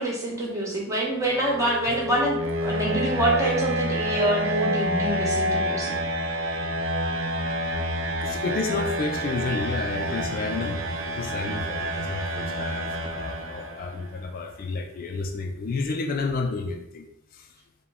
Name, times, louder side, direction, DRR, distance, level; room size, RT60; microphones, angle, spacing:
voice 1, 0.0-5.9, right 1 dB, 15° right, -4 dB, 1.0 m, -26 dB
sound 1, 1.2-14.0, equal, 75° right, 0.6 m, -28 dB
voice 2, 8.2-17.1 17.3-17.5, left 3 dB, 45° left, 4 dB, 0.3 m, -31 dB
4.8 x 2.2 x 3.4 m, 0.78 s
head